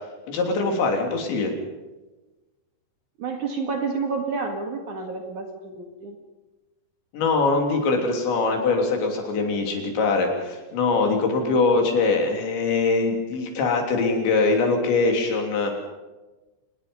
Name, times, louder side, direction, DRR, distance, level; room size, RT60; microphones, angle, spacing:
voice 1, 0.3-1.5 7.1-15.8, left 3 dB, 75° left, 3 dB, 5.6 m, -22 dB
voice 2, 3.2-6.2 11.3-11.9, right 4 dB, 50° right, 4 dB, 2.9 m, -30 dB
26.5 x 20.0 x 5.5 m, 1.1 s
omnidirectional pair, 5.2 m